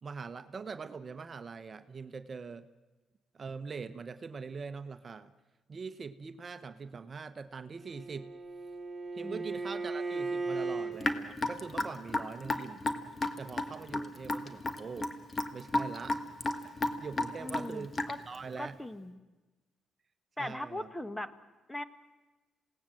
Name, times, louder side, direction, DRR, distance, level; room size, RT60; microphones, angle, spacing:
voice 1, 0.0-2.7 3.3-5.3 5.7-8.3 9.1-12.8 13.4-15.2 15.5-16.2 16.6-17.9 18.3-18.8 20.4-20.9, right 5 dB, 40° right, 11 dB, 1.0 m, -43 dB
Bowed string instrument, 7.8-11.0, right 3 dB, 15° right, 3.3 m, -36 dB
Raindrop / Drip, 11.0-18.4, left 2 dB, 30° left, 1.6 m, -33 dB
voice 2, 17.4-18.2 18.6-19.2 20.4-21.3 21.7-21.8, left 1 dB, 10° left, 13 dB, 1.2 m, -39 dB
27.5 x 18.0 x 7.7 m, 1.2 s
cardioid pair, 90°, 0 cm